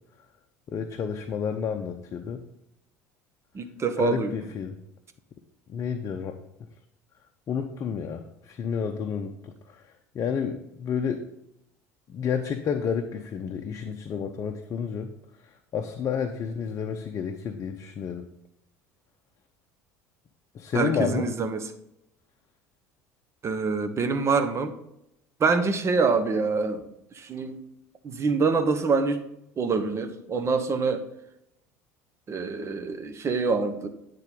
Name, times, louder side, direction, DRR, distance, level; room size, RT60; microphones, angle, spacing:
voice 1, 0.7-2.4 4.0-4.8 5.7-6.4 7.5-9.5 10.1-11.2 12.1-15.1 15.7-18.3 20.5-21.3, left 7 dB, 40° left, 5 dB, 0.7 m, -30 dB
voice 2, 3.5-4.3 20.7-21.7 23.4-24.7 25.4-26.8 27.1-27.6 28.0-29.2 29.6-31.0 32.3-33.9, right 4 dB, 35° right, 8 dB, 1.0 m, -25 dB
9.5 x 3.8 x 5.2 m, 0.82 s
hypercardioid pair, 70°, 8 cm